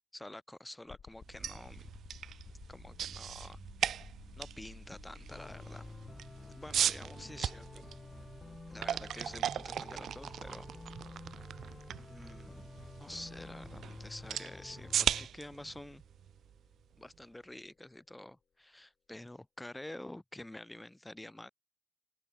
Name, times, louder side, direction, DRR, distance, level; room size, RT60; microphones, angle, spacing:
voice 1, 0.1-1.9 2.7-3.6 4.4-5.8 6.6-7.8 8.7-10.7 11.9-12.7 13.0-14.9 15.2-16.0 17.0-21.5, left 1 dB, 10° left, 2.2 m, -48 dB
sound 1, 0.9-17.8, left 6 dB, 45° left, 6.1 m, -57 dB
sound 2, 1.2-17.1, right 9 dB, 90° right, 0.6 m, -39 dB
sound 3, 5.3-15.3, left 3 dB, 25° left, 0.7 m, -50 dB
open air
wide cardioid pair, 145°, 0 cm